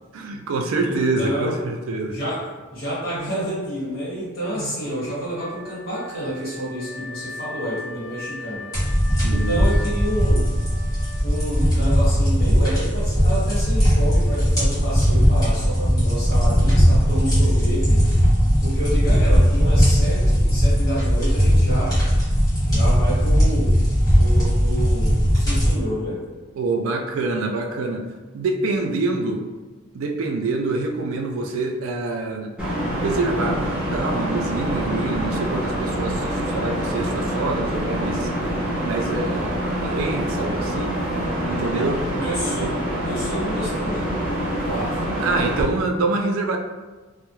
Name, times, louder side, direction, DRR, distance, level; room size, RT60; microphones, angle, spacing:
voice 1, 0.1-2.2 4.6-4.8 9.2-9.7 26.5-28.1 28.3-29.4 29.9-32.5 33.0-33.6 33.9-38.3 38.8-40.9 41.5-42.0 45.2-46.6, right 3 dB, 85° right, 4 dB, 0.3 m, -26 dB
voice 2, 0.8-1.6 2.1-8.7 9.3-10.5 11.2-18.1 18.6-22.0 22.6-23.8 24.1-26.2 42.1-42.8 43.0-44.1 44.6-45.0, equal, 45° left, -8 dB, 1.3 m, -29 dB
Wind instrument woodwind instrument, 5.4-12.4, left 3 dB, 70° left, 0.6 m, -39 dB
sound 1, 8.7-25.7, equal, 20° left, 1.0 m, -18 dB
sound 2, 32.6-45.6, equal, 5° right, 0.5 m, -25 dB
2.2 x 2.1 x 2.9 m, 1.3 s
head